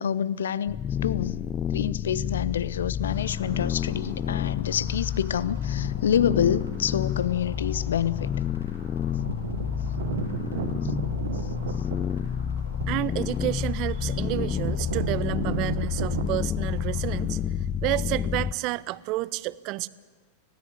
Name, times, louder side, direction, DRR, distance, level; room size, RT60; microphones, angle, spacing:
voice 1, 0.0-8.3 10.8-10.9 11.3-11.5, left 9 dB, 65° left, 0.7 m, -27 dB
sound 1, 0.7-18.5, left 9 dB, 25° left, 0.6 m, -29 dB
sound 2, 3.1-17.1, left 2 dB, 80° left, 7.1 m, -49 dB
sound 3, 5.7-6.1 7.2-7.3 8.0-8.3 8.6-8.7 9.0-16.4, right 9 dB, 60° right, 1.0 m, -35 dB
voice 2, 12.9-17.4 17.8-19.9, right 18 dB, 40° right, 0.6 m, -30 dB
19.5 x 16.5 x 8.5 m
figure-of-eight pair, 90°, 0 cm